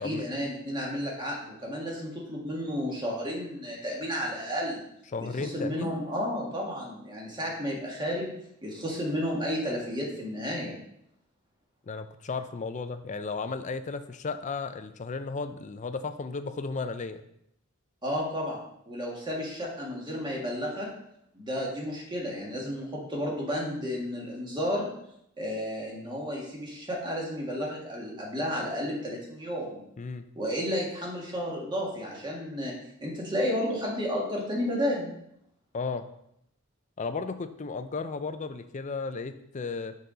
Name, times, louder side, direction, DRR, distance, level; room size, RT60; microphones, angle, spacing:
voice 1, 0.0-4.8 5.4-8.3 8.6-10.7 18.0-20.9 21.3-24.9 25.4-29.8 30.4-32.7 33.0-35.1, equal, 20° right, -3 dB, 1.7 m, -32 dB
voice 2, 5.1-5.9 11.9-17.2 30.0-30.3 35.7-36.1 37.0-40.0, left 4 dB, 35° left, 10 dB, 0.4 m, -34 dB
6.7 x 4.0 x 5.0 m, 0.76 s
head